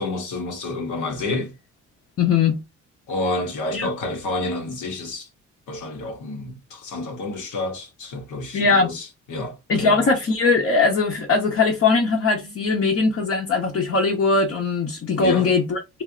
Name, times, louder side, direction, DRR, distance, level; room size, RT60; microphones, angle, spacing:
voice 1, 0.0-1.6 3.1-5.3 5.7-10.1 15.2-15.5, left 2 dB, 80° left, 1.1 m, -29 dB
voice 2, 2.2-2.6 3.7-3.9 8.5-8.9 9.7-15.8, left 4 dB, 50° left, 0.9 m, -20 dB
3.2 x 2.2 x 3.7 m
cardioid pair, 90°, 30 cm